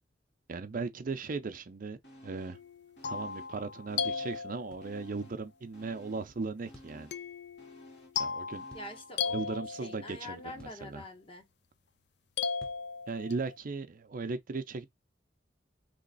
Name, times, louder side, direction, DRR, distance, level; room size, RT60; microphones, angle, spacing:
voice 1, 0.5-2.0 2.2-2.6 3.1-7.1 8.2-8.7 9.3-11.0 13.1-14.9, right 4 dB, 50° right, 0.5 m, -37 dB
sound 1, 2.0-2.7 3.0-4.5 4.8-9.2 9.5-9.6, equal, 85° left, 2.1 m, -55 dB
sound 2, 2.5-5.0 7.1-10.3 12.4-13.6, left 6 dB, 65° left, 0.5 m, -37 dB
sound 3, 4.7-4.9 6.7-7.0 8.7-8.9 10.6-10.9 12.6-12.9, equal, 5° left, 0.8 m, -54 dB
voice 2, 8.7-11.5, left 2 dB, 30° left, 1.1 m, -46 dB
3.4 x 3.1 x 3.9 m
head